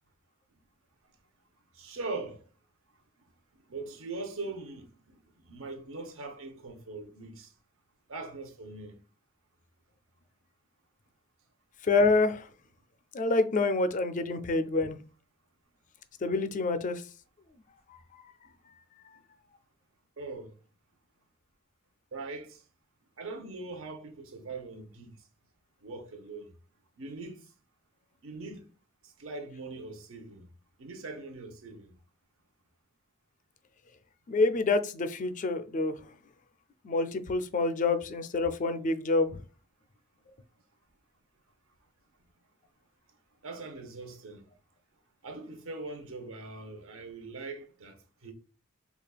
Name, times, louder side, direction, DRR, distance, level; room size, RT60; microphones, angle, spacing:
voice 1, 1.7-2.5 3.7-7.5 8.1-9.0 20.2-20.6 22.1-22.6 23.2-25.1 25.8-26.5 27.0-27.4 28.2-28.7 29.0-30.5 30.8-31.9 43.4-44.4 45.2-48.3, right 3 dB, 70° right, 0.8 m, -41 dB
voice 2, 11.8-12.5 13.1-15.0 16.2-17.0 34.3-36.0 36.8-39.4, left 3 dB, 35° left, 0.4 m, -27 dB
5.0 x 2.3 x 2.3 m
head